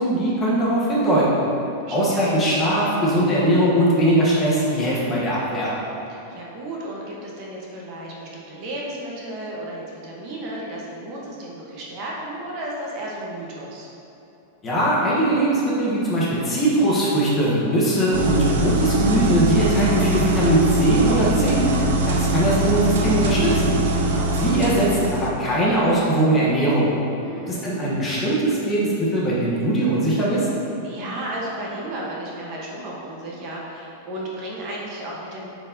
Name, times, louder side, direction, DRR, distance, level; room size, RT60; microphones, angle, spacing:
voice 1, 0.0-1.4 1.9-5.7 14.6-23.7 24.4-26.9 27.5-30.5, right 1 dB, 15° left, -6 dB, 1.0 m, -20 dB
voice 2, 1.8-2.3 6.1-13.9 23.8-24.3 27.2-27.6 30.8-35.5, right 1 dB, 35° right, -4 dB, 1.0 m, -33 dB
sound 1, 18.1-25.3, right 1 dB, 75° right, 0.7 m, -22 dB
9.3 x 4.5 x 2.7 m, 3.0 s
supercardioid pair, 170°, 0 cm